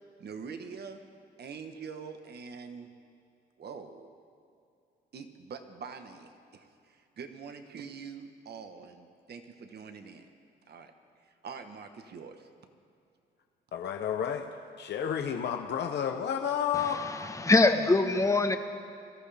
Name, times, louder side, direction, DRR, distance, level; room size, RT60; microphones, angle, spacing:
voice 1, 0.2-1.0 1.4-2.9 3.6-4.1 5.1-10.3 10.7-10.9 11.4-12.5, right 5 dB, 55° right, 7 dB, 1.3 m, -44 dB
voice 2, 13.7-14.5 14.8-17.0, left 8 dB, 60° left, 3 dB, 0.9 m, -31 dB
voice 3, 16.7-18.6, left 3 dB, 15° left, 6 dB, 1.1 m, -24 dB
24.0 x 13.5 x 3.5 m, 2.5 s
cardioid pair, 90°, 20 cm